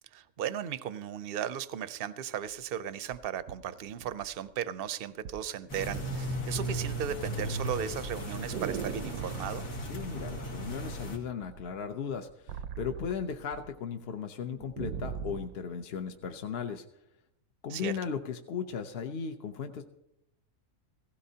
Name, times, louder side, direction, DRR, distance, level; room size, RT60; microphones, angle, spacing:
voice 1, 0.1-9.7 17.7-17.9, right 9 dB, 60° right, 14 dB, 0.6 m, -36 dB
sound 1, 2.5-2.6 3.1-4.6 5.2-5.5 5.8-6.3 6.6-9.5 10.6-11.1 11.4-13.7 14.0-14.1 14.4-15.6 16.2-16.3, right 8 dB, 90° right, 1.1 m, -40 dB
sound 2, 5.7-11.2, right 1 dB, 80° left, 2.3 m, -36 dB
voice 2, 9.9-16.8 17.6-19.8, left 7 dB, 55° left, 6 dB, 0.8 m, -36 dB
16.0 x 16.0 x 2.8 m, 0.80 s
omnidirectional pair, 1.5 m